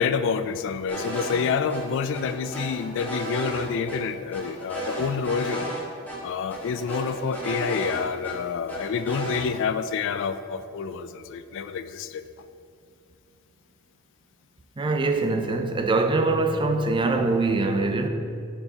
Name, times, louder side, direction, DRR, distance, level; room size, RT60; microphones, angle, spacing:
voice 1, 0.0-5.7 6.2-12.2, left 6 dB, 60° left, 0.3 m, -28 dB
sound 1, 0.9-1.4 1.7-1.8 2.1-3.6 3.9-4.0 4.3-5.8 6.1-6.2 6.5-8.3 8.7-9.4, right 2 dB, 10° left, 1.4 m, -33 dB
voice 2, 14.8-18.1, right 3 dB, 25° right, 0.4 m, -23 dB
9.9 x 4.6 x 2.9 m
head